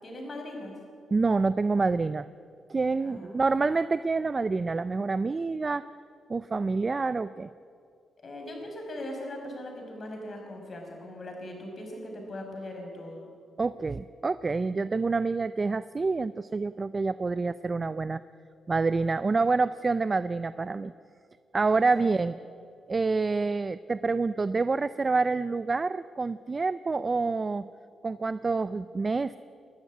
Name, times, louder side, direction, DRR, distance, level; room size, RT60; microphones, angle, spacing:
voice 1, 0.0-0.8 3.0-3.6 8.2-13.3 21.7-21.8, left 1 dB, 45° left, 2 dB, 5.5 m, -40 dB
voice 2, 1.1-2.3 2.7-5.9 6.3-7.5 13.6-18.2 18.7-20.9 21.5-22.3 22.9-27.7 28.0-29.4, right 4 dB, 30° right, 14 dB, 0.4 m, -27 dB
22.0 x 12.5 x 9.6 m, 2.3 s
cardioid pair, 100°, 0 cm